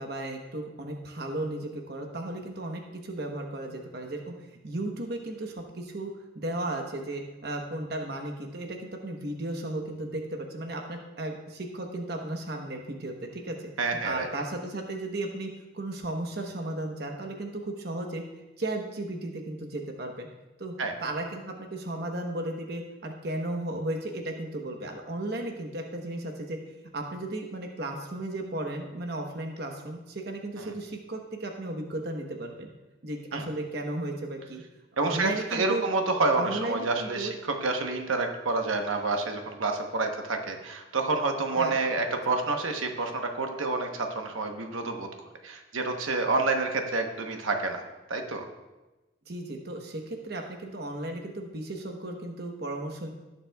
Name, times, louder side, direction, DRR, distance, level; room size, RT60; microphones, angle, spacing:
voice 1, 0.0-4.3 4.6-13.7 14.0-18.2 18.6-20.3 20.6-20.7 21.0-26.6 26.9-32.7 33.0-34.6 35.0-35.8 36.3-37.3 41.6-41.7 42.1-42.2 49.3-53.1, right 1 dB, 55° right, 2 dB, 1.0 m, -35 dB
voice 2, 13.8-14.3 20.8-20.9 30.6-30.7 33.3-33.4 35.0-45.1 45.4-47.8 48.1-48.4, right 3 dB, 85° right, 4 dB, 1.0 m, -28 dB
17.5 x 7.3 x 2.3 m, 1.1 s
head